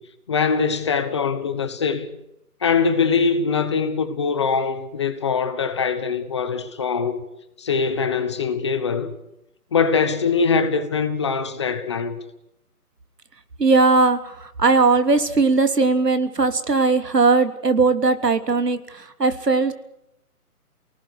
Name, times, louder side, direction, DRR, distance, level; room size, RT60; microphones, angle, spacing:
voice 1, 0.3-2.1 2.6-7.2 7.6-9.2 9.7-12.2, left 5 dB, 20° left, 1.1 m, -22 dB
voice 2, 13.6-19.7, right 3 dB, 90° right, 3.4 m, -19 dB
29.0 x 19.0 x 6.7 m
hypercardioid pair, 165°, 47 cm